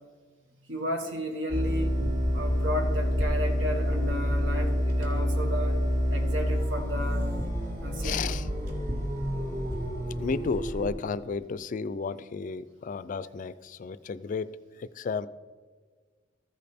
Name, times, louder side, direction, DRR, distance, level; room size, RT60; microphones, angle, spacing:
voice 1, 0.7-2.0 2.3-5.8 6.1-7.3 7.8-8.4, equal, 80° right, 3 dB, 1.5 m, -33 dB
sound 1, 1.5-10.9, equal, 50° right, 1.7 m, -28 dB
voice 2, 8.0-8.5 10.2-14.5 14.8-15.3, left 5 dB, 45° left, 16 dB, 0.3 m, -32 dB
14.0 x 5.2 x 4.3 m, 1.5 s
head